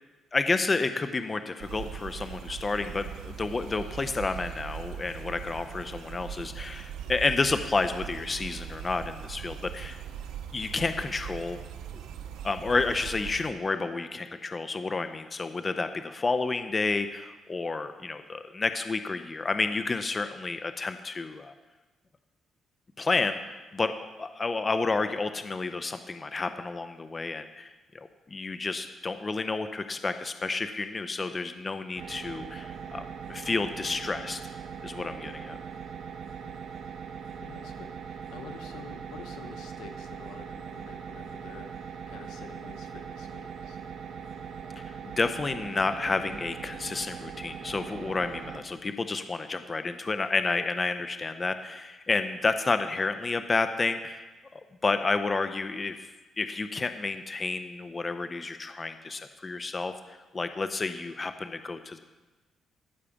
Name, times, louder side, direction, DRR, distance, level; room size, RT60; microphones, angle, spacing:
voice 1, 0.3-10.0 10.5-11.6 11.9-12.0 12.4-21.5 23.0-34.4 34.8-35.6 44.8-62.0, left 3 dB, 30° left, 9 dB, 0.6 m, -30 dB
sound 1, 1.6-13.5, right 9 dB, 90° right, 0.7 m, -40 dB
sound 2, 31.9-48.6, right 7 dB, 65° right, 1.0 m, -41 dB
voice 2, 37.4-43.8, left 7 dB, 90° left, 6 dB, 1.1 m, -48 dB
14.0 x 4.9 x 7.1 m, 1.2 s
cardioid pair, 90°, 0 cm